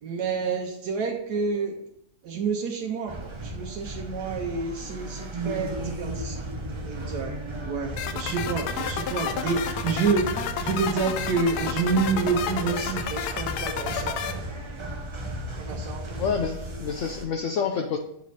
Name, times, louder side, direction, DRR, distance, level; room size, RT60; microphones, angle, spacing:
voice 1, 0.0-1.8 2.2-6.4 6.8-7.4 7.7-14.2 15.6-16.3, right 5 dB, 90° right, 1 dB, 1.3 m, -28 dB
sound 1, 3.1-17.2, right 1 dB, 35° right, 0.4 m, -35 dB
sound 2, 8.0-14.3, left 8 dB, 80° left, 1.1 m, -31 dB
voice 2, 16.2-18.0, left 6 dB, 65° left, 2 dB, 0.8 m, -28 dB
8.2 x 3.2 x 4.0 m, 0.74 s
omnidirectional pair, 1.6 m